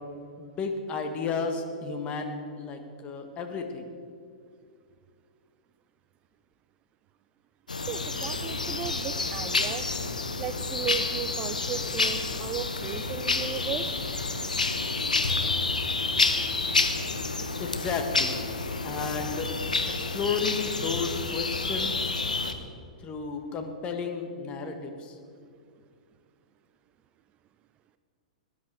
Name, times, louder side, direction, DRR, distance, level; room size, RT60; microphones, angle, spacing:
voice 1, 0.4-3.9 17.6-18.3 18.8-19.5 20.0-22.1 23.0-25.1, left 5 dB, 30° left, 5 dB, 1.6 m, -33 dB
sound 1, 7.7-22.5, left 3 dB, 85° left, 1.1 m, -29 dB
voice 2, 7.9-9.9 10.4-14.0 15.7-15.8, right 9 dB, 30° right, 12 dB, 0.5 m, -36 dB
18.0 x 10.5 x 4.7 m, 2.3 s
figure-of-eight pair, 105°, 4 cm